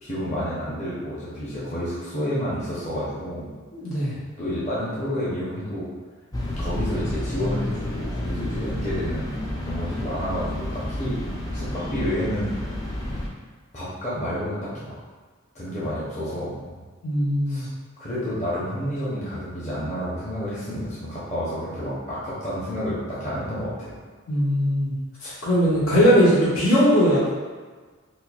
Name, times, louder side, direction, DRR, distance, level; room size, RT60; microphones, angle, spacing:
voice 1, 0.0-3.5 4.4-5.9 6.6-11.1 11.5-12.5 13.7-14.9 15.5-16.6 17.5-17.7 18.0-24.0, equal, 35° left, -9 dB, 0.8 m, -30 dB
voice 2, 3.7-4.1 17.0-17.7 24.3-25.0 25.2-27.3, equal, 85° left, -10 dB, 1.5 m, -20 dB
sound 1, 6.3-13.3, left 1 dB, 15° left, 0.4 m, -30 dB
4.3 x 2.5 x 2.4 m, 1.4 s
head